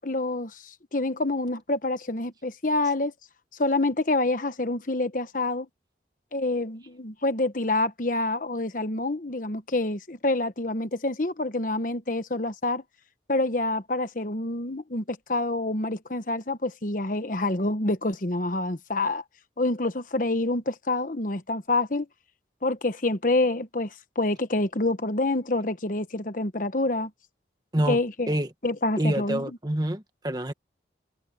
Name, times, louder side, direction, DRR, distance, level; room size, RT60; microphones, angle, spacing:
voice 1, 0.0-3.1 3.6-5.7 6.3-12.8 13.3-19.2 19.6-22.1 22.6-27.1 27.9-28.3 28.6-29.5, left 2 dB, 45° left, 1.2 m, -27 dB
voice 2, 29.0-30.5, right 1 dB, 20° right, 1.2 m, -26 dB
head